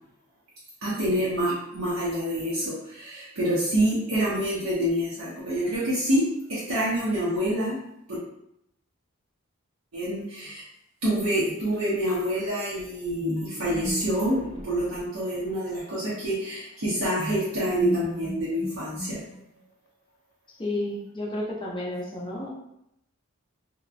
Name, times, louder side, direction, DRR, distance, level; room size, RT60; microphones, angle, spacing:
voice 1, 0.8-6.2 6.5-7.8 8.1-8.2 9.9-10.6 11.0-19.2, equal, 80° right, -9 dB, 0.7 m, -27 dB
sound 1, 13.2-15.8 17.2-19.6, equal, 65° left, 0.7 m, -37 dB
voice 2, 20.6-22.5, left 1 dB, 20° left, -4 dB, 0.5 m, -32 dB
2.8 x 2.1 x 2.5 m, 0.80 s
head